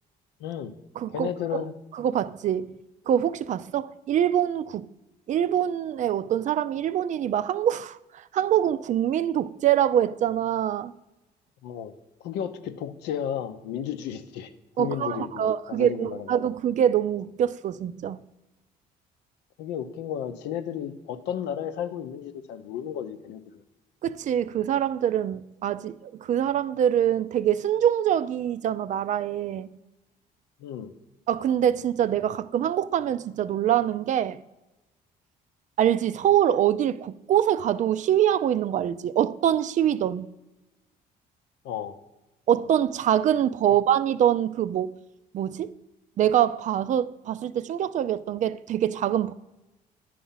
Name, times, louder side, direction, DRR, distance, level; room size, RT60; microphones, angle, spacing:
voice 1, 0.4-0.7 1.1-1.7 11.6-11.9 12.2-14.5 14.8-16.3 19.6-23.6 30.6-30.9 41.6-42.0, left 9 dB, 90° left, 0.7 m, -33 dB
voice 2, 1.0-1.3 1.9-2.7 3.1-4.9 5.3-10.9 14.8-18.2 24.0-29.7 31.3-34.4 35.8-40.3 42.5-45.0 45.3-45.7 46.2-49.3, right 10 dB, 45° right, 0.4 m, -24 dB
10.0 x 4.7 x 5.6 m
cardioid pair, 110°, 17 cm